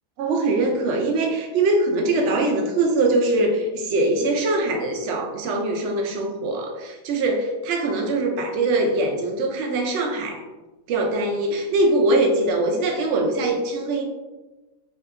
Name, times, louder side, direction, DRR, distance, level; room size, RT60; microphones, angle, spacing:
voice 1, 0.2-10.4 10.9-14.0, right 2 dB, 65° right, 2 dB, 0.7 m, -22 dB
2.8 x 2.2 x 3.5 m, 1.2 s
omnidirectional pair, 1.7 m